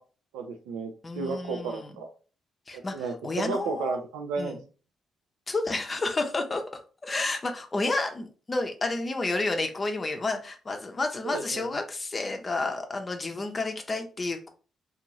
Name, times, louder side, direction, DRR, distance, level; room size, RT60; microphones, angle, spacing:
voice 1, 0.3-2.1 2.7-4.6 11.2-11.7, right 4 dB, 80° right, 5 dB, 0.4 m, -33 dB
voice 2, 1.0-1.9 2.7-4.0 4.4-4.6 5.5-6.6 7.0-14.5, left 2 dB, 35° left, 5 dB, 0.6 m, -30 dB
2.6 x 2.4 x 3.0 m, 0.37 s
hypercardioid pair, 45°, 0 cm